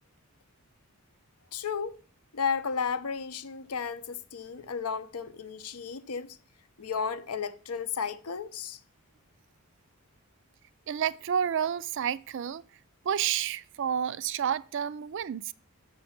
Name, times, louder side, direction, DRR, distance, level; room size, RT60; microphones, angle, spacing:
voice 1, 1.5-2.0 2.3-6.4 6.8-8.8, left 6 dB, 85° left, 0.7 m, -33 dB
voice 2, 10.9-12.6 13.0-15.5, right 8 dB, 55° right, 0.3 m, -30 dB
6.7 x 6.4 x 5.8 m
head